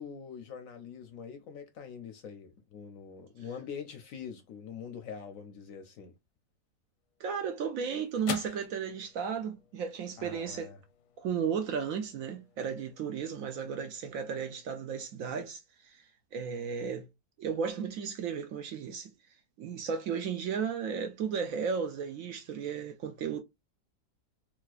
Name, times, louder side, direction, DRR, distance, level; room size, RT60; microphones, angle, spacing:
voice 1, 0.0-6.2 10.2-10.8, left 6 dB, 70° left, 0.8 m, -44 dB
sound 1, 7.0-15.5, left 9 dB, 90° left, 1.2 m, -48 dB
voice 2, 7.2-10.7 11.2-16.0 16.3-17.0 17.4-19.1 19.6-23.4, right 6 dB, 65° right, 0.9 m, -34 dB
4.0 x 2.3 x 2.4 m
omnidirectional pair, 1.7 m